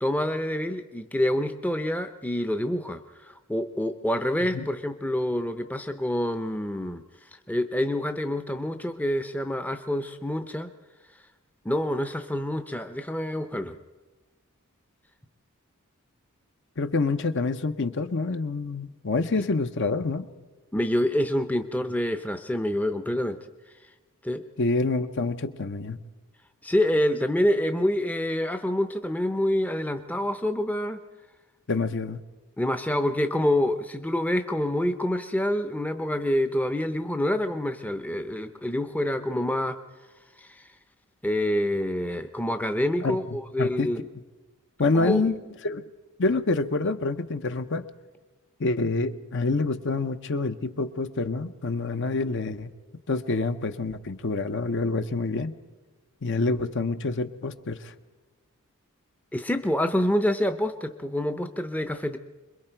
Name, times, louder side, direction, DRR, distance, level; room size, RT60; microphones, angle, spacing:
voice 1, 0.0-3.0 3.3-7.0 7.5-10.7 11.6-13.8 20.7-23.4 24.2-24.4 26.6-31.0 32.6-39.8 40.4-40.6 41.2-44.1 44.9-45.3 59.3-62.2, left 1 dB, 5° left, 8 dB, 0.6 m, -27 dB
voice 2, 16.8-20.3 24.6-26.0 31.7-32.2 43.0-43.2 43.6-43.9 44.8-45.3 45.6-45.8 46.2-47.9 48.6-52.7 53.1-55.5 56.2-57.9, left 3 dB, 55° left, 9 dB, 0.8 m, -27 dB
26.5 x 22.0 x 4.5 m, 1.2 s
head